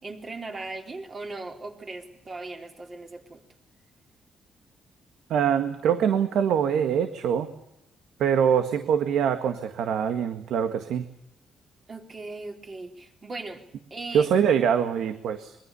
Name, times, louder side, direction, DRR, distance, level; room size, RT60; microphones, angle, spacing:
voice 1, 0.0-3.4 11.9-13.6 13.9-14.3, right 3 dB, 30° right, 3 dB, 3.9 m, -38 dB
voice 2, 5.3-7.5 8.2-11.1 14.1-15.6, right 8 dB, 85° right, 8 dB, 1.8 m, -24 dB
25.0 x 23.0 x 7.0 m, 0.76 s
cardioid pair, 145°, 0 cm